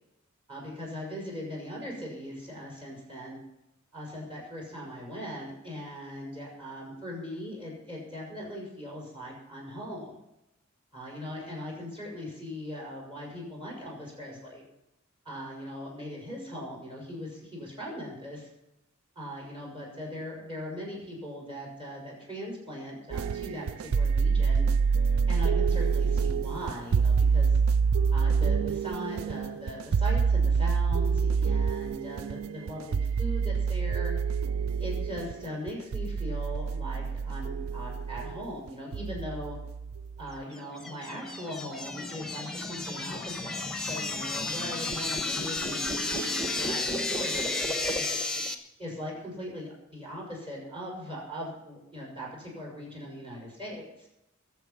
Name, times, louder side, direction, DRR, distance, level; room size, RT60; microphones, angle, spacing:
voice 1, 0.5-3.4 3.9-10.2 10.9-14.6 15.2-18.5 19.2-24.6 25.3-27.6 28.1-34.1 34.8-39.6 40.2-48.1 48.8-54.1, equal, 25° right, -3 dB, 6.1 m, -40 dB
sound 1, 23.1-40.3, right 5 dB, 75° right, 0.4 m, -27 dB
sound 2, 40.6-48.5, left 2 dB, 5° left, 1.2 m, -32 dB
21.5 x 7.4 x 5.9 m, 0.88 s
head